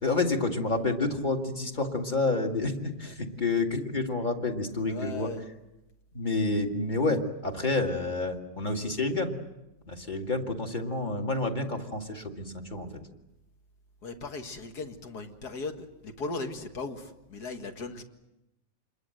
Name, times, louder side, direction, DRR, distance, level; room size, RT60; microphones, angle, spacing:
voice 1, 0.0-5.3 6.1-9.4 9.9-12.9, left 3 dB, 25° left, 3 dB, 2.3 m, -29 dB
voice 2, 4.8-5.4 14.0-18.0, left 3 dB, 60° left, 6 dB, 2.4 m, -38 dB
27.5 x 22.0 x 7.9 m, 0.94 s
omnidirectional pair, 1.9 m